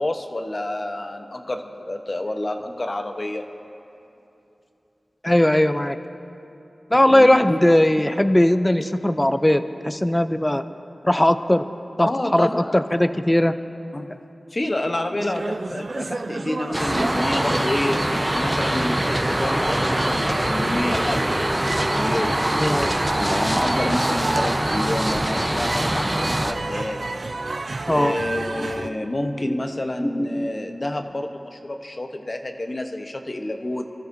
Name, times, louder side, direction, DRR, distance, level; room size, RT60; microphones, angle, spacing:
voice 1, 0.0-3.5 7.1-7.6 12.0-12.9 13.9-14.2 14.5-18.0 18.3-21.5 21.9-22.4 23.2-27.1 27.9-33.8, left 1 dB, 45° left, 5 dB, 0.9 m, -28 dB
voice 2, 5.2-6.0 6.9-10.6 11.0-11.6 12.0-13.5 22.6-22.9 27.9-29.0 29.4-29.6 30.0-30.5, left 1 dB, 15° left, 10 dB, 0.5 m, -19 dB
sound 1, 15.2-28.9, right 3 dB, 65° right, 0.4 m, -31 dB
sound 2, 16.7-26.5, right 1 dB, 20° right, 0.8 m, -23 dB
25.0 x 13.5 x 2.7 m, 2.8 s
wide cardioid pair, 55°, 0 cm